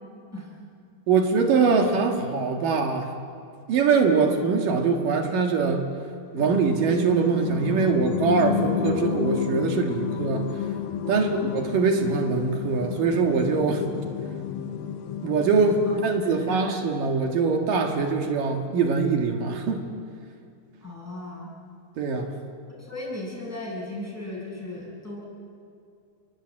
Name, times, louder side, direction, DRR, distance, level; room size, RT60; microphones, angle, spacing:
voice 1, 1.1-3.1 3.7-5.9 6.3-10.5 11.1-13.8 15.2-19.8 22.0-22.4, right 5 dB, 65° right, 4 dB, 3.3 m, -23 dB
sound 1, 6.4-16.5, left 9 dB, 75° left, 2.9 m, -31 dB
voice 2, 11.0-11.4 15.9-16.7 20.8-21.5 22.8-25.2, left 1 dB, 5° left, -4 dB, 7.6 m, -36 dB
29.5 x 22.0 x 8.9 m, 2.4 s
omnidirectional pair, 4.3 m